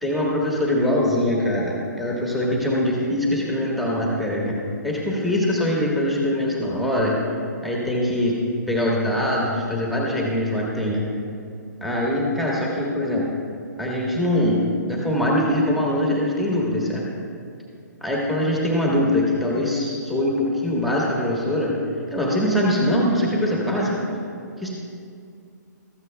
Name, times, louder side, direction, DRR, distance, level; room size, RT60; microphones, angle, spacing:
voice 1, 0.0-4.6 4.8-7.2 7.6-8.3 8.7-11.0 11.8-13.2 13.8-17.0 18.0-21.7 22.1-24.0 24.6-24.7, left 1 dB, ahead, -4 dB, 1.4 m, -22 dB
15.5 x 13.5 x 2.3 m, 2.4 s
hypercardioid pair, 150°, 10 cm